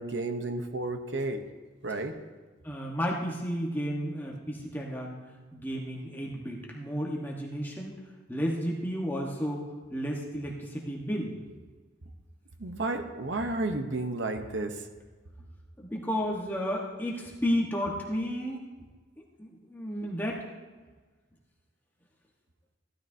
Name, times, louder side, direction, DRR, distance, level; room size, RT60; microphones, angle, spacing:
voice 1, 0.0-1.4 1.8-2.2 12.6-14.8, right 2 dB, 65° right, 7 dB, 0.9 m, -32 dB
voice 2, 2.6-5.2 5.5-8.0 8.3-11.3 15.8-18.6 19.4-20.5, equal, 10° left, -3 dB, 1.2 m, -32 dB
15.0 x 12.5 x 2.7 m, 1.3 s
head